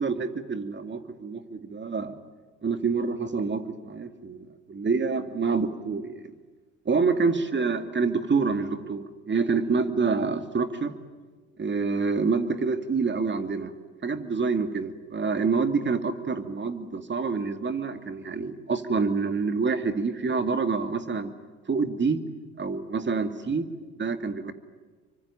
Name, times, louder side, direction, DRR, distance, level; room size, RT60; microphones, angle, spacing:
voice 1, 0.0-2.2 2.6-6.2 6.9-10.9 11.6-13.7 14.0-21.3 21.7-22.2 22.6-23.6 24.0-24.5, right 4 dB, 30° right, 8 dB, 2.5 m, -27 dB
25.5 x 24.5 x 8.9 m, 1.4 s
hypercardioid pair, 70°, 35 cm